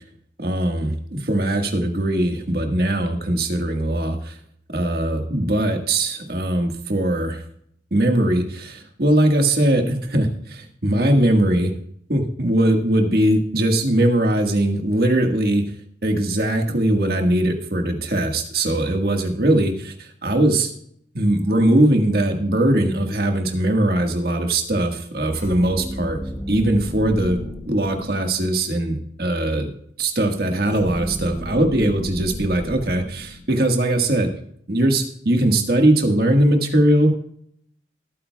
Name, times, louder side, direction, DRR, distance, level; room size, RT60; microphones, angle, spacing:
voice 1, 0.4-4.4 4.7-7.4 7.9-11.7 12.1-15.6 16.0-20.7 21.1-26.2 26.5-29.7 30.0-34.3 34.7-37.1, right 1 dB, 55° right, 4 dB, 1.6 m, -20 dB
sound 1, 25.3-28.6 30.6-33.9, equal, 15° left, 4.1 m, -33 dB
20.5 x 9.0 x 2.3 m, 0.68 s
head